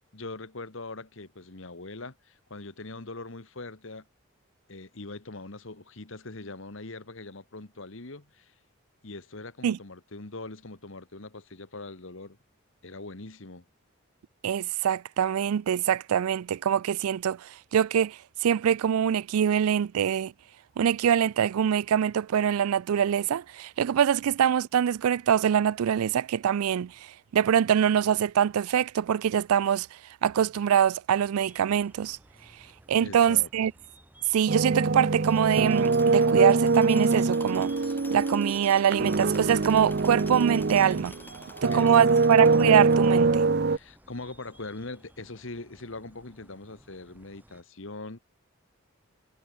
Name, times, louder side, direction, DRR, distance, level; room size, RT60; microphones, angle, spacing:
voice 1, 0.0-4.0 4.7-8.5 9.0-12.4 12.8-13.6 33.0-33.5 41.4-42.2 43.7-48.2, left 2 dB, 65° left, 1.6 m, -42 dB
voice 2, 14.4-20.3 20.8-26.9 27.3-29.9 30.2-32.2 32.9-33.7 34.3-37.7 38.1-41.2 41.6-43.4, right 9 dB, 90° right, 0.4 m, -24 dB
sound 1, 31.4-47.6, right 1 dB, 10° right, 5.4 m, -57 dB
sound 2, 34.5-41.2 41.6-43.8, right 3 dB, 50° right, 0.6 m, -23 dB
Tools, 35.3-43.6, left 2 dB, 10° left, 2.6 m, -48 dB
head